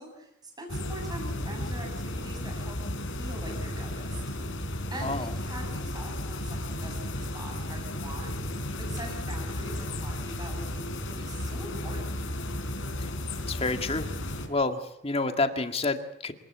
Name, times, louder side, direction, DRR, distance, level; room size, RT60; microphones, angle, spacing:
voice 1, 0.0-4.2 4.9-12.1, right 1 dB, 20° right, 2 dB, 7.2 m, -43 dB
sound 1, 0.7-14.5, left 1 dB, 90° left, 4.4 m, -34 dB
voice 2, 5.0-5.3 13.0-13.1 13.5-14.1 14.5-16.3, left 3 dB, 30° left, 7 dB, 2.0 m, -29 dB
26.0 x 19.5 x 8.1 m, 0.77 s
head